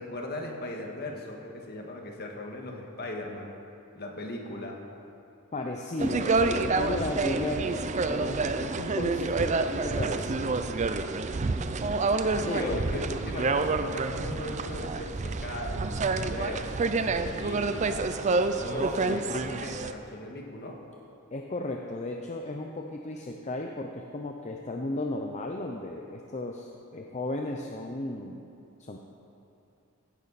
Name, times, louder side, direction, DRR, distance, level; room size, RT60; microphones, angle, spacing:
voice 1, 0.0-3.6 4.0-4.8 12.5-20.8, left 1 dB, 50° left, 0 dB, 1.7 m, -38 dB
voice 2, 5.5-10.6 12.4-12.8 19.0-19.4 21.3-28.4 28.8-29.0, left 2 dB, 35° left, 2 dB, 0.6 m, -35 dB
sound 1, 6.0-19.9, right 3 dB, 35° right, 0.5 m, -28 dB
16.0 x 11.0 x 4.2 m, 2.7 s
head